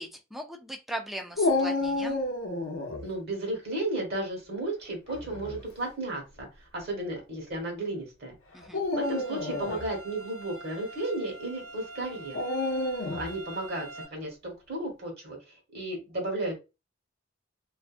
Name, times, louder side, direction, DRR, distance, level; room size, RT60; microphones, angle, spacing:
voice 1, 0.0-2.2 8.5-8.8, right 1 dB, ahead, 4 dB, 0.4 m, -38 dB
Dog, 1.4-3.0 5.1-5.6 6.4-6.5 8.6-9.9 12.3-13.3, left 2 dB, 90° left, 0.6 m, -29 dB
voice 2, 3.0-6.5 6.7-8.4 8.9-12.4 13.1-15.4 15.7-16.6, right 2 dB, 55° right, 0 dB, 1.2 m, -34 dB
sound 1, 9.0-14.1, right 2 dB, 70° right, 0.9 m, -45 dB
2.6 x 2.2 x 2.4 m, 0.27 s
head